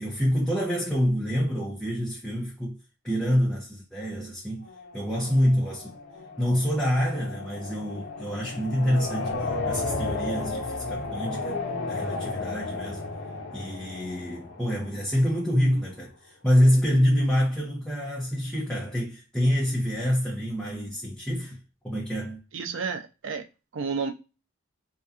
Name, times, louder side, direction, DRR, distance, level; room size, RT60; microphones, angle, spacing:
voice 1, 0.0-2.8 3.0-4.7 4.9-6.0 6.4-11.6 11.9-13.0 13.5-22.4, equal, 5° left, 0.7 m, -26 dB
sound 1, 4.6-15.5, left 3 dB, 65° left, 0.8 m, -34 dB
voice 2, 22.5-23.4 23.7-24.1, right 5 dB, 60° right, 0.4 m, -31 dB
2.6 x 2.2 x 2.4 m
head